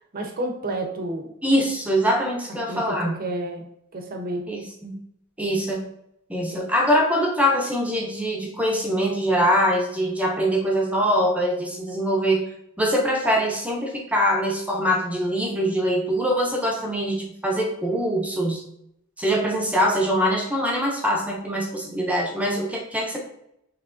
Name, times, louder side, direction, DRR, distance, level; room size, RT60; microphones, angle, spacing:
voice 1, 0.1-1.3 2.7-3.6 3.9-4.5 6.5-6.7, right 1 dB, 45° right, 4 dB, 0.7 m, -30 dB
voice 2, 1.4-3.2 4.5-5.0 5.4-5.8 6.3-12.5 12.8-18.6 19.2-23.2, equal, 5° right, -2 dB, 0.7 m, -23 dB
5.9 x 3.2 x 2.5 m, 0.77 s
head